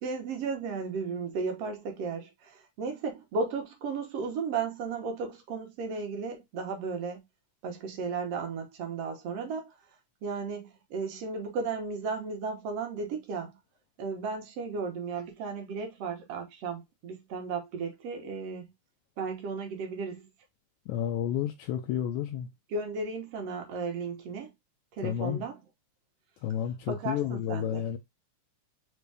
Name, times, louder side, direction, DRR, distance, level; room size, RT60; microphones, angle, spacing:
voice 1, 0.0-7.2 7.6-9.7 10.2-13.6 14.0-18.7 19.2-20.3 22.7-24.5 24.9-25.6 26.9-27.8, right 4 dB, 65° right, 1.7 m, -34 dB
voice 2, 20.9-22.5 25.0-25.4 26.4-28.0, left 10 dB, 80° left, 1.8 m, -31 dB
5.3 x 2.2 x 3.2 m
omnidirectional pair, 3.4 m